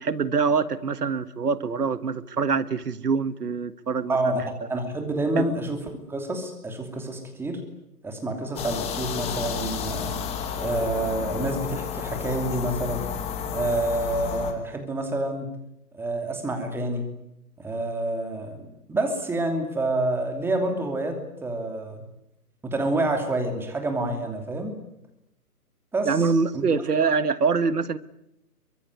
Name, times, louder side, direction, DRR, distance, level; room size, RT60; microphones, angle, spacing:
voice 1, 0.0-4.4 5.4-5.5 26.0-28.0, right 5 dB, 75° right, 15 dB, 1.6 m, -24 dB
voice 2, 4.1-4.4 4.7-5.8 6.1-7.6 8.0-10.1 10.6-13.1 13.5-15.5 15.9-17.1 17.6-22.0 22.6-24.8 25.9-26.2 26.5-26.6, right 2 dB, 5° right, 4 dB, 2.8 m, -28 dB
sound 1, 8.6-14.5, left 7 dB, 15° left, 2.0 m, -31 dB
23.5 x 23.0 x 9.6 m, 0.82 s
figure-of-eight pair, 145°, 47 cm